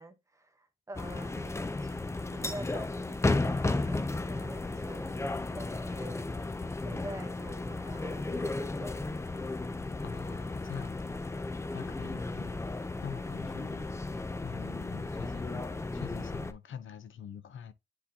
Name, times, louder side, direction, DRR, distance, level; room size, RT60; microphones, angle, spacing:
voice 1, 0.0-6.3 6.8-9.3, right 1 dB, 15° right, 0.9 m, -47 dB
sound 1, 0.9-16.5, left 2 dB, 15° left, 0.5 m, -34 dB
voice 2, 10.0-11.2 11.7-13.9 14.4-17.7, left 8 dB, 80° left, 0.7 m, -44 dB
10.0 x 3.9 x 2.8 m
wide cardioid pair, 170°, 20 cm